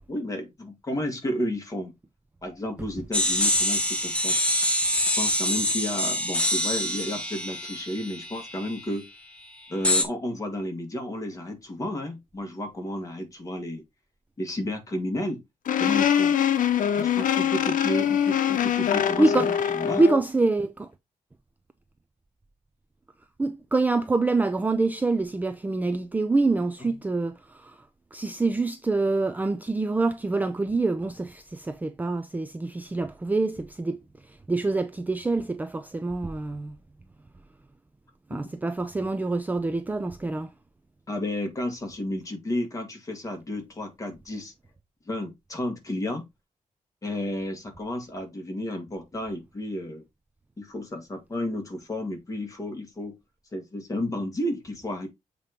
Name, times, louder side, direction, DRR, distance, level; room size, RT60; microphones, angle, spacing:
voice 1, 0.1-1.9 2.4-4.4 5.2-9.1 9.7-13.8 14.4-15.4 15.8-16.3 17.0-19.5 19.7-20.0 26.8-27.0 41.1-44.5 45.1-46.2 47.0-50.0 50.6-53.2 53.5-55.1, left 1 dB, 25° left, 2.0 m, -32 dB
sound 1, 3.1-8.8 9.8-10.0, left 1 dB, 10° left, 1.3 m, -25 dB
sound 2, 15.7-20.2, left 9 dB, 80° left, 0.8 m, -23 dB
voice 2, 19.2-19.5 20.0-20.9 23.4-27.8 28.1-34.0 34.3-36.8 38.3-40.5, right 3 dB, 10° right, 0.4 m, -26 dB
7.3 x 3.0 x 5.1 m
wide cardioid pair, 180°, 14 cm